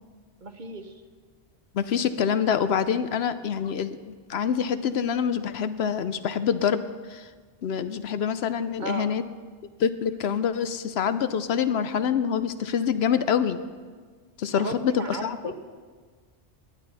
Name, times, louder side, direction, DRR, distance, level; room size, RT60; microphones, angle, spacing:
voice 1, 0.4-0.9 8.8-9.1 14.6-15.5, right 3 dB, 45° right, 7 dB, 0.9 m, -35 dB
voice 2, 1.7-6.8 7.1-7.2 7.6-9.2 9.8-13.6 14.4-15.5, left 7 dB, 70° left, 12 dB, 0.8 m, -26 dB
18.5 x 11.0 x 4.1 m, 1.5 s
omnidirectional pair, 1.2 m